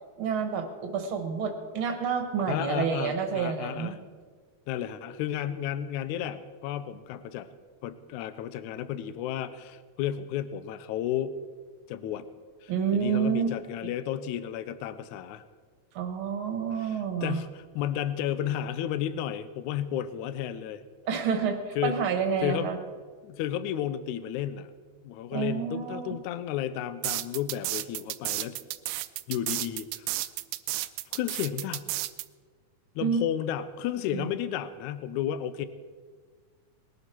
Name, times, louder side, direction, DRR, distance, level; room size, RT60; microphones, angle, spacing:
voice 1, 0.2-4.0 12.7-13.5 15.9-17.4 21.1-22.8 25.3-26.1 33.0-33.2 34.1-34.3, right 6 dB, 50° right, 6 dB, 1.8 m, -29 dB
voice 2, 2.5-4.0 4.7-7.5 7.8-11.4 11.9-12.3 12.6-15.4 16.8-20.8 21.8-22.0 22.4-22.7 23.2-24.7 25.0-28.6 29.3-30.1 31.1-31.9 33.0-35.7, left 10 dB, 80° left, 13 dB, 2.0 m, -32 dB
sound 1, 27.0-32.3, right 16 dB, 80° right, 2.0 m, -32 dB
20.0 x 13.0 x 4.4 m, 1.6 s
omnidirectional pair, 3.7 m